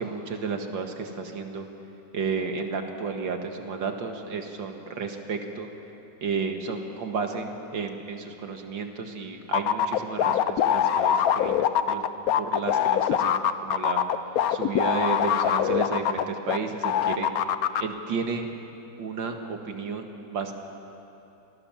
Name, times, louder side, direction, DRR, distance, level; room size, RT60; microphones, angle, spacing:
voice 1, 0.0-1.7 2.1-5.7 6.2-12.0 12.4-14.0 14.5-17.3 17.8-18.5 19.0-20.5, right 5 dB, 80° right, 4 dB, 2.4 m, -32 dB
sound 1, 9.5-16.6 16.8-17.8, left 9 dB, 60° left, 1.0 m, -23 dB
27.0 x 19.0 x 7.3 m, 2.9 s
omnidirectional pair, 2.0 m